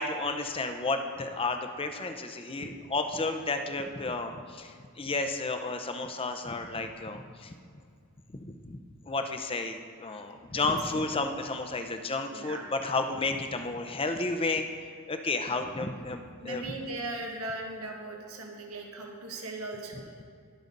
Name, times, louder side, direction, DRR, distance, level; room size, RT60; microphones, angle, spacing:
voice 1, 0.0-7.6 8.3-8.8 9.1-16.7, left 3 dB, 25° left, 6 dB, 0.7 m, -32 dB
voice 2, 10.5-11.0 12.3-12.7 16.4-20.0, right 2 dB, 75° right, 1 dB, 1.5 m, -38 dB
20.0 x 6.9 x 3.9 m, 2.2 s
head